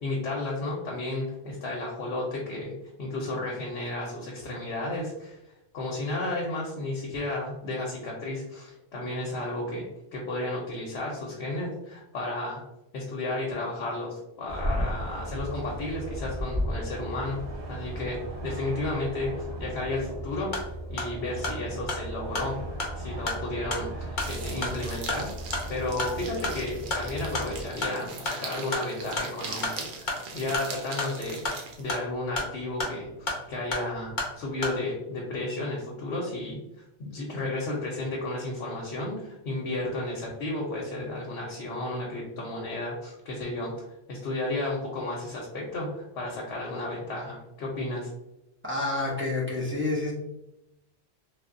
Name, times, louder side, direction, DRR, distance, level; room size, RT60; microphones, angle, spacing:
voice 1, 0.0-2.7 3.0-5.4 5.7-9.9 10.1-12.6 12.9-17.4 17.7-20.5 20.9-22.6 23.0-36.6 37.0-48.1, left 2 dB, 80° left, -2 dB, 0.9 m, -33 dB
sound 1, 14.5-27.7, right 1 dB, 35° right, 1.2 m, -36 dB
sound 2, 20.3-34.8, left 2 dB, 55° left, 0.8 m, -35 dB
sound 3, 24.2-32.0, right 4 dB, 60° right, 0.6 m, -41 dB
voice 2, 48.6-50.1, left 2 dB, 15° right, -5 dB, 0.4 m, -28 dB
3.2 x 2.1 x 2.4 m, 0.90 s
omnidirectional pair, 1.1 m